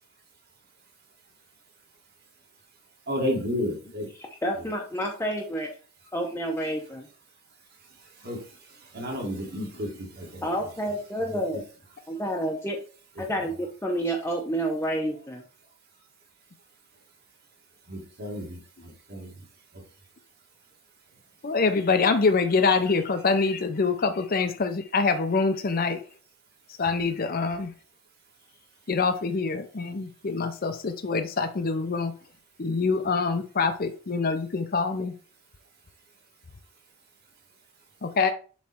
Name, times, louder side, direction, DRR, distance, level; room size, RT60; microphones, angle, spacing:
voice 1, 3.1-4.1 8.2-8.4 8.9-10.5 11.3-11.4 13.4-13.5 17.9-18.6 19.1-19.3, left 1 dB, 50° right, -1 dB, 2.2 m, -31 dB
voice 2, 4.4-5.7 6.1-7.1 10.4-11.6 12.1-12.8 13.2-15.4, right 1 dB, 10° left, 0 dB, 0.7 m, -29 dB
voice 3, 21.4-26.0 26.8-27.7 28.9-32.1 32.6-35.1 38.0-38.3, left 4 dB, 45° left, 7 dB, 0.6 m, -25 dB
7.2 x 3.3 x 4.4 m, 0.38 s
head